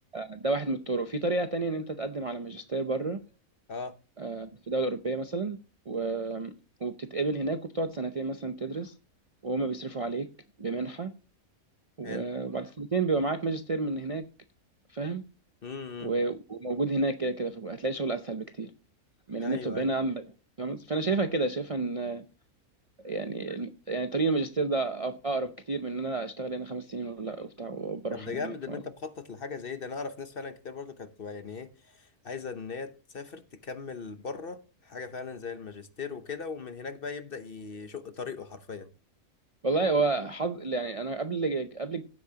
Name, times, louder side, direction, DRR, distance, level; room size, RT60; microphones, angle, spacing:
voice 1, 0.1-3.2 4.2-5.6 5.9-6.5 6.8-8.9 9.4-10.3 10.6-11.1 12.0-14.2 14.9-15.2 16.0-18.7 19.3-20.2 20.6-22.2 23.0-28.7 39.6-42.0, right 3 dB, 40° right, 0.5 m, -30 dB
voice 2, 15.6-16.1 19.4-19.9 28.1-38.9, left 5 dB, 45° left, 1.0 m, -39 dB
15.5 x 8.4 x 2.8 m
omnidirectional pair, 1.4 m